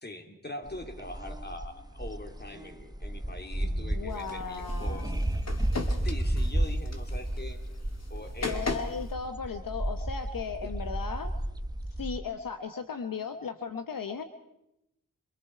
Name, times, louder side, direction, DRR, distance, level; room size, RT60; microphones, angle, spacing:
voice 1, 0.0-5.1 6.0-7.6 8.1-8.8 10.6-10.7, left 1 dB, 30° left, 5 dB, 3.0 m, -42 dB
sound 1, 0.7-12.2, right 1 dB, 10° right, 1.1 m, -33 dB
voice 2, 3.6-5.2 8.4-11.3 12.0-14.2, left 6 dB, 75° left, 9 dB, 1.2 m, -36 dB
sound 2, 4.1-9.1, left 3 dB, 50° left, 2.5 m, -39 dB
26.5 x 23.5 x 4.7 m, 0.85 s
cardioid pair, 55°, 34 cm